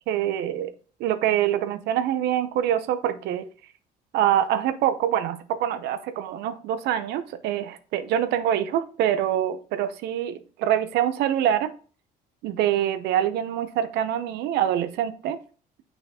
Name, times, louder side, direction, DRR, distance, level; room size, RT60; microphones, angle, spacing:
voice 1, 0.1-0.7 1.0-3.5 4.1-11.7 12.4-15.4, right 11 dB, 80° right, 0.7 m, -25 dB
6.8 x 5.6 x 2.8 m
cardioid pair, 110°, 17 cm